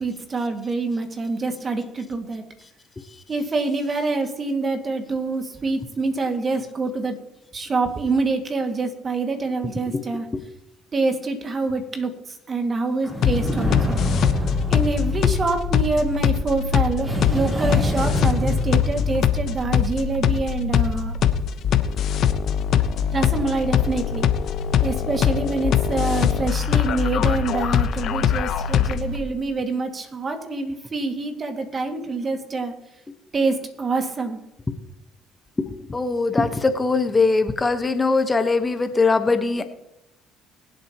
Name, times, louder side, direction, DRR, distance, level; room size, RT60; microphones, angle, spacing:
voice 1, 0.0-2.5 3.3-7.2 7.5-10.3 10.9-14.0 14.7-21.2 23.1-24.3 24.8-32.7 33.3-34.4, right 3 dB, 40° right, 5 dB, 2.1 m, -26 dB
sound 1, 13.0-16.1 17.0-19.7, equal, 20° right, 4.4 m, -27 dB
sound 2, 13.2-29.2, left 8 dB, 65° left, 1.0 m, -22 dB
voice 2, 35.6-39.7, left 3 dB, 25° left, 8 dB, 1.2 m, -21 dB
23.0 x 8.0 x 3.0 m, 0.85 s
supercardioid pair, 65°, 0 cm